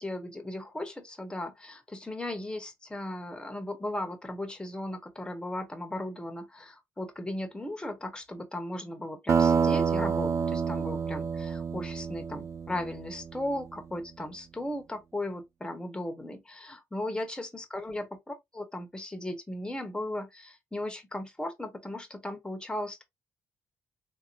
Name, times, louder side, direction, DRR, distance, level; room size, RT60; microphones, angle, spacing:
voice 1, 0.0-23.0, left 1 dB, 10° left, 1.2 m, -37 dB
sound 1, 9.3-13.6, right 6 dB, 45° right, 0.4 m, -28 dB
3.5 x 2.9 x 2.5 m
cardioid pair, 75°, 7 cm